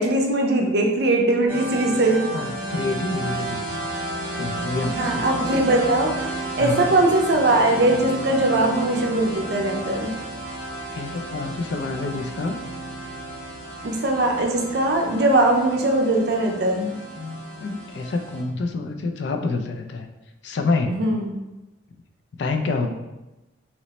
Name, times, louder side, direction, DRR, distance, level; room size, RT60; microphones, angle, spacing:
voice 1, 0.0-2.3 4.9-6.3 6.6-10.1 13.8-16.8 21.0-21.3, right 2 dB, 60° right, 2 dB, 0.5 m, -20 dB
sound 1, 1.5-18.4, right 2 dB, 10° right, 0.6 m, -32 dB
voice 2, 2.3-3.8 4.4-5.2 6.6-6.9 10.9-12.6 16.6-20.1 20.4-21.0 22.4-22.9, left 3 dB, 65° left, 5 dB, 0.3 m, -28 dB
2.9 x 2.0 x 4.0 m, 1.0 s
head